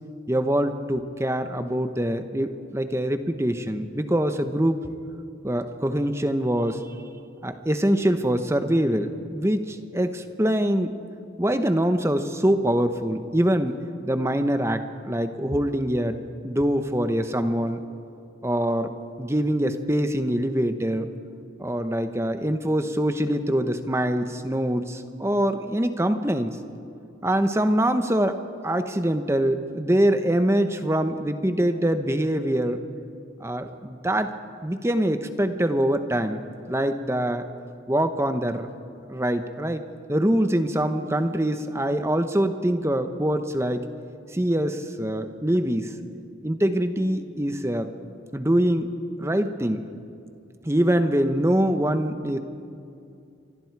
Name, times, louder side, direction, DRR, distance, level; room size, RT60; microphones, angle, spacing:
voice 1, 0.3-4.9 5.4-6.8 7.4-10.9 11.4-13.8 14.1-17.8 18.4-21.1 21.6-26.6 27.2-32.8 33.4-34.4 34.6-36.4 36.7-37.5 37.9-38.7 39.1-43.8 44.3-45.9 46.4-47.9 48.3-48.9 49.2-49.8 50.6-52.4, right 1 dB, 15° right, 8 dB, 0.9 m, -24 dB
29.0 x 24.5 x 4.7 m, 2.6 s
head